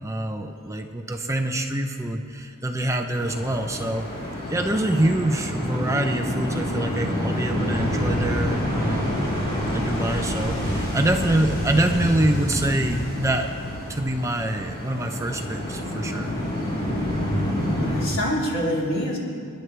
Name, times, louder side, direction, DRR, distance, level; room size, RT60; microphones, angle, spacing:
voice 1, 0.0-4.0 4.5-9.3 9.7-13.5 13.9-16.3, right 1 dB, 15° right, 4 dB, 0.7 m, -25 dB
sound 1, 3.2-18.1, equal, 25° left, 3.7 m, -27 dB
voice 2, 17.4-19.2, equal, 70° left, -5 dB, 3.8 m, -27 dB
29.0 x 11.0 x 3.4 m, 2.2 s
head